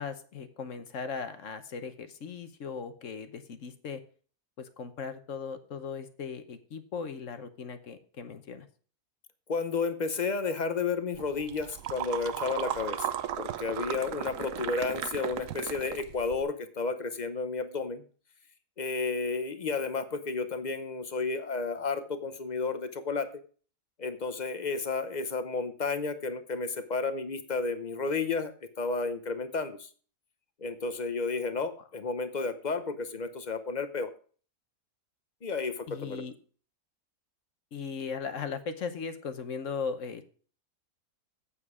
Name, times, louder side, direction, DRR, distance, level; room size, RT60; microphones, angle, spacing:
voice 1, 0.0-4.0 4.6-8.7 35.9-36.3 37.7-40.3, left 5 dB, 55° left, 9 dB, 1.2 m, -38 dB
voice 2, 9.5-13.1 13.4-18.0 18.8-23.3 24.0-29.9 30.6-34.1 35.4-36.2, left 4 dB, 40° left, 10 dB, 0.7 m, -32 dB
sound 1, 11.1-16.4, right 10 dB, 65° right, 1.0 m, -36 dB
8.5 x 7.5 x 4.8 m, 0.42 s
omnidirectional pair, 1.7 m